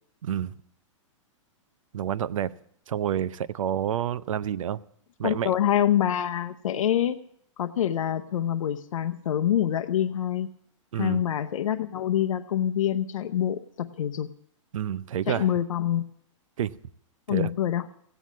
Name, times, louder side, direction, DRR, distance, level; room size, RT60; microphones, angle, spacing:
voice 1, 0.2-0.5 1.9-2.5 2.9-4.8 5.2-5.5 10.9-11.2 14.7-15.5 16.6-16.7 17.3-17.5, right 10 dB, 80° right, 0.7 m, -28 dB
voice 2, 5.2-7.2 7.6-10.5 10.9-14.3 15.3-16.0 17.3-17.9, left 10 dB, 85° left, 0.8 m, -26 dB
16.0 x 9.3 x 7.3 m
hypercardioid pair, 160°, 17 cm